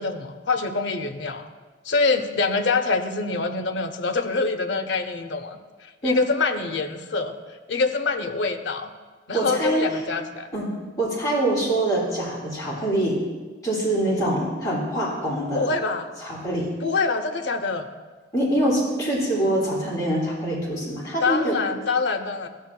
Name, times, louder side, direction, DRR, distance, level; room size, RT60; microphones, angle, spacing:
voice 1, 0.0-1.5 1.8-7.3 7.7-8.9 9.3-10.5 15.5-16.1 16.8-17.8 21.2-22.5, left 4 dB, 65° left, 6 dB, 0.6 m, -25 dB
voice 2, 9.3-9.9 10.5-10.7 11.0-13.2 13.6-15.7 16.2-16.7 18.3-21.6, right 1 dB, 20° left, -7 dB, 2.5 m, -24 dB
13.0 x 6.6 x 2.3 m, 1.3 s
head